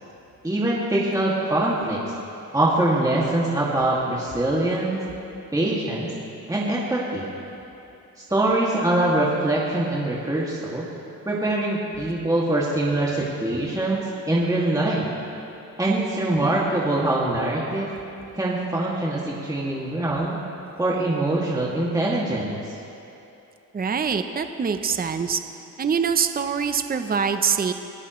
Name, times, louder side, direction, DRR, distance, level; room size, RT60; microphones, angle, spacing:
voice 1, 0.4-2.0 2.5-5.0 5.5-6.1 6.5-7.2 8.2-10.8 11.3-15.1 15.8-17.9 18.3-20.4 20.8-22.6, right 1 dB, 10° right, -6 dB, 2.3 m, -23 dB
voice 2, 23.7-25.4 25.8-27.7, right 6 dB, 25° right, 8 dB, 0.8 m, -24 dB
26.0 x 15.5 x 3.2 m, 2.8 s
cardioid pair, 95°, 35 cm